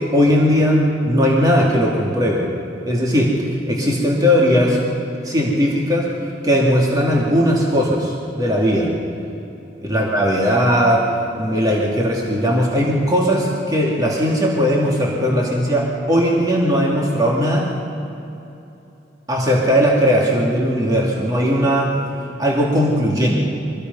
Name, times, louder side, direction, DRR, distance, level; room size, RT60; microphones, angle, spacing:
voice 1, 0.0-2.5 2.8-4.8 5.2-6.1 6.4-8.9 9.8-11.1 11.4-17.7 19.3-22.0 22.4-23.4, equal, 20° right, -3 dB, 2.6 m, -18 dB
25.0 x 19.0 x 5.5 m, 2.8 s
head